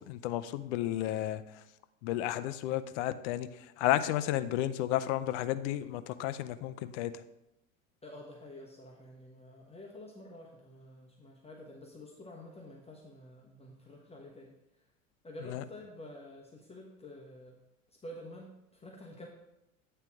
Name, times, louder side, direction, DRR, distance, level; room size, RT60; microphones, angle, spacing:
voice 1, 0.1-1.4 2.0-7.1 15.5-15.6, left 13 dB, 55° left, 13 dB, 0.6 m, -32 dB
voice 2, 8.0-14.5 15.2-17.6 17.9-19.3, left 1 dB, 15° left, -1 dB, 1.1 m, -49 dB
9.4 x 3.3 x 6.0 m, 0.88 s
hypercardioid pair, 80°, 41 cm